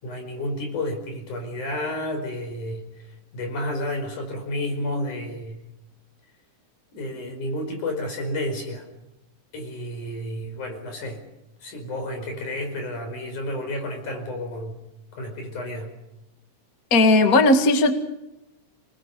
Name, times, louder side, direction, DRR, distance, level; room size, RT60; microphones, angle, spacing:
voice 1, 0.0-3.1 3.3-5.6 6.9-8.9 9.5-11.2 11.6-14.8 15.1-15.9, left 1 dB, 75° left, 5 dB, 6.4 m, -31 dB
voice 2, 16.9-17.9, left 2 dB, 30° left, 6 dB, 2.0 m, -16 dB
28.0 x 20.5 x 6.9 m, 0.91 s
omnidirectional pair, 3.6 m